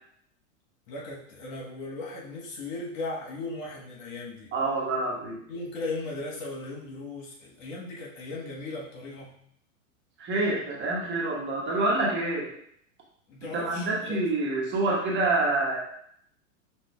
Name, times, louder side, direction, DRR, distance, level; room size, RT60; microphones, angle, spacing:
voice 1, 0.9-4.5 5.5-9.4 13.3-14.2, left 2 dB, 70° left, -3 dB, 1.4 m, -37 dB
voice 2, 4.5-5.4 10.2-12.5 13.5-15.8, right 2 dB, 30° right, -4 dB, 1.2 m, -27 dB
5.9 x 2.7 x 2.3 m, 0.67 s
hypercardioid pair, 110°, 41 cm